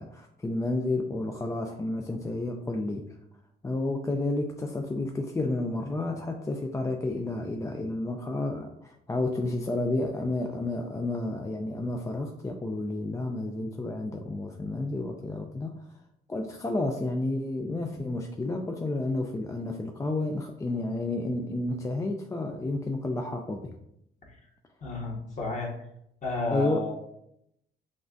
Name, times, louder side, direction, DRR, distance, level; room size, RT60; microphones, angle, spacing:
voice 1, 0.0-3.2 3.6-16.0 16.3-23.7 26.5-26.8, left 2 dB, 15° left, 3 dB, 0.3 m, -31 dB
voice 2, 24.8-25.7 26.2-27.0, left 3 dB, 40° left, -2 dB, 1.3 m, -31 dB
5.2 x 2.4 x 2.5 m, 0.77 s
cardioid pair, 90°, 20 cm